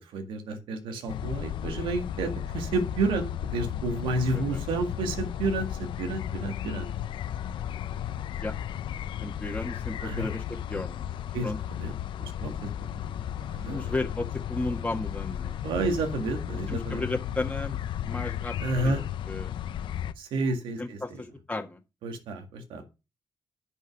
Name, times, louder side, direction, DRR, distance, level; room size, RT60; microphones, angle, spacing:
voice 1, 0.0-6.9 10.0-10.3 11.3-11.9 12.2-13.9 15.6-17.0 18.6-19.0 20.2-21.0 22.0-22.8, right 3 dB, 90° right, 5 dB, 1.9 m, -31 dB
sound 1, 1.1-20.1, left 10 dB, 80° left, 0.7 m, -34 dB
voice 2, 9.2-11.0 11.4-11.6 13.7-15.6 16.7-17.8 18.0-18.6 18.8-19.0 19.3-19.5 20.8-21.8, left 2 dB, 15° left, 2 dB, 1.7 m, -34 dB
10.5 x 5.5 x 5.9 m, 0.28 s
cardioid pair, 65°, 8 cm